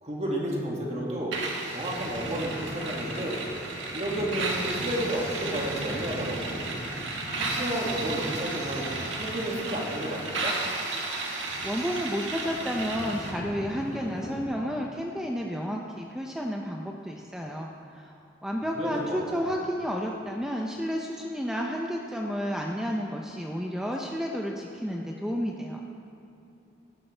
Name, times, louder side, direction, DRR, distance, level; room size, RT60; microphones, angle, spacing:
voice 1, 0.0-1.4 1.7-3.4 3.9-6.6 7.4-8.9 9.2-10.6 18.8-19.5, right 1 dB, 35° right, -3 dB, 2.1 m, -31 dB
sound 1, 1.3-13.3, right 3 dB, 80° right, 1.7 m, -34 dB
sound 2, 1.7-14.4, equal, 40° left, 3.2 m, -41 dB
voice 2, 11.6-25.8, equal, 5° right, 0 dB, 0.5 m, -31 dB
17.5 x 11.0 x 3.4 m, 2.8 s
head